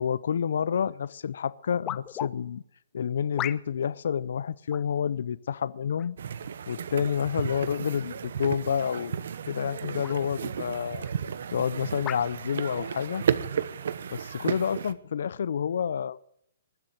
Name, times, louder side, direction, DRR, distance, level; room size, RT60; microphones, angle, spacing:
voice 1, 0.0-2.6 2.9-6.2 6.7-9.1 9.5-11.1 11.5-13.2 14.1-16.2, left 7 dB, 70° left, 19 dB, 0.6 m, -29 dB
sound 1, 0.9-1.0 1.8-2.3 3.4-3.9 4.7-5.0 6.0-6.4 7.2-7.3 9.2-9.4 10.0-10.2 11.0-11.1 12.0-12.3 13.1-13.3, left 14 dB, 25° left, 0.6 m, -36 dB
sound 2, 6.2-14.9, right 7 dB, 70° right, 1.0 m, -33 dB
20.0 x 7.7 x 9.1 m, 0.69 s
hypercardioid pair, 140°, 0 cm